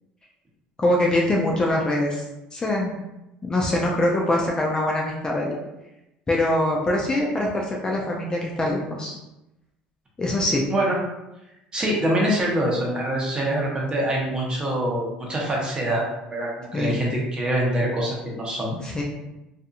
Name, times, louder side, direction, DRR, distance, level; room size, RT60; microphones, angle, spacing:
voice 1, 0.8-2.2 2.5-2.9 3.4-5.5 6.3-9.2 10.2-10.7 16.7-17.0 18.8-19.0, left 1 dB, 20° left, -2 dB, 0.5 m, -23 dB
voice 2, 11.7-16.0 16.3-18.8, right 1 dB, 25° right, -3 dB, 0.9 m, -24 dB
2.5 x 2.5 x 2.4 m, 0.93 s
supercardioid pair, 95°, 4 cm